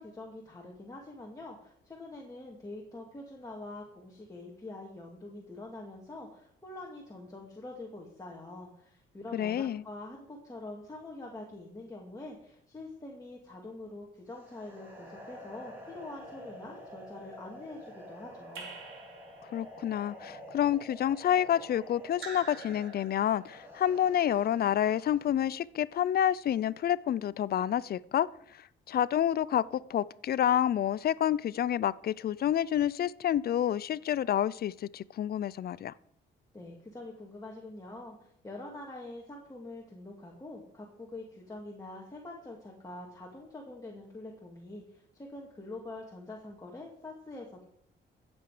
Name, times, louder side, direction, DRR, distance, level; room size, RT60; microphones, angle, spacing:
voice 1, 0.0-18.7 36.5-47.6, left 2 dB, 15° left, 2.3 m, -45 dB
voice 2, 9.3-9.8 19.5-28.3 28.9-35.9, left 10 dB, 50° left, 0.5 m, -28 dB
sound 1, 14.3-25.4, equal, 10° right, 4.4 m, -49 dB
Raindrop / Drip, 18.6-19.8 22.1-23.5, right 4 dB, 75° right, 3.3 m, -46 dB
15.0 x 7.9 x 5.0 m
cardioid pair, 90°, 20 cm